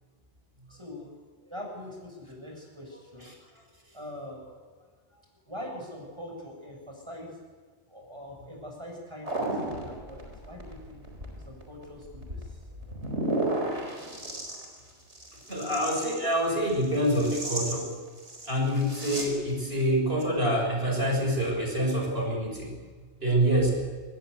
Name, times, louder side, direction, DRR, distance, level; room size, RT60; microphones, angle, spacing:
voice 1, 0.7-1.1 1.4-4.7 5.1-7.4 7.9-11.1 11.4-13.0, left 1 dB, 25° right, 0 dB, 7.7 m, -43 dB
sound 1, 9.2-19.2, right 1 dB, 90° right, 4.7 m, -34 dB
voice 2, 15.5-17.9 18.4-22.7 23.2-23.7, equal, 60° right, 1 dB, 6.7 m, -26 dB
24.5 x 18.5 x 8.2 m, 1.5 s
omnidirectional pair, 1.1 m